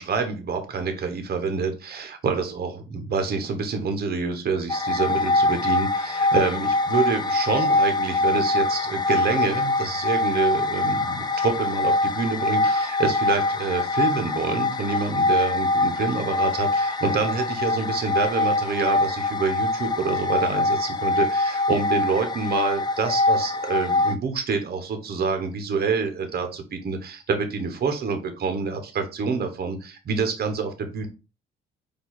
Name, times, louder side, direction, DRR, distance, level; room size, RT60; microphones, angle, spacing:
voice 1, 0.0-31.1, right 5 dB, 50° right, 7 dB, 1.1 m, -27 dB
sound 1, 4.7-24.1, left 2 dB, 20° left, 0.4 m, -24 dB
4.7 x 2.7 x 4.0 m, 0.30 s
cardioid pair, 90°, 20 cm